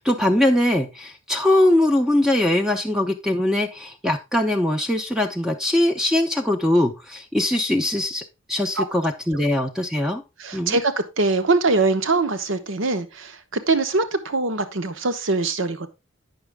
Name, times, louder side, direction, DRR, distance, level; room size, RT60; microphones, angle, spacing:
voice 1, 0.0-8.2 8.5-10.2 10.5-10.8, left 1 dB, 5° right, 0.6 m, -21 dB
voice 2, 10.4-15.9, right 3 dB, 70° right, 1.0 m, -22 dB
8.9 x 6.1 x 3.5 m
head